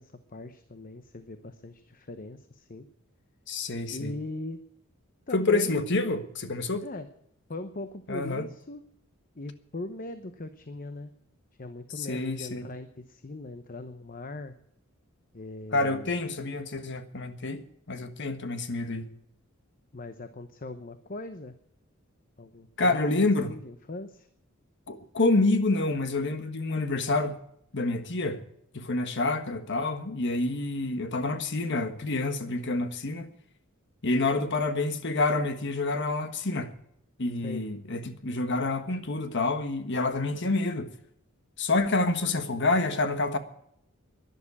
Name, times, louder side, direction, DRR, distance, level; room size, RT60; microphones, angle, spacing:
voice 1, 0.0-2.9 3.9-4.6 5.3-5.8 6.8-7.1 7.5-8.8 9.4-11.1 11.6-14.5 15.3-16.2 19.9-21.6 22.4-24.3 37.4-37.6, left 2 dB, 40° left, 0.9 m, -40 dB
voice 2, 3.5-4.2 5.3-6.8 8.1-8.5 12.0-12.7 15.7-19.1 22.8-23.5 24.9-27.4 27.7-28.4 28.7-33.3 34.0-36.7 37.2-40.9 41.6-43.4, left 2 dB, 55° left, 1.4 m, -28 dB
12.0 x 11.0 x 8.5 m
head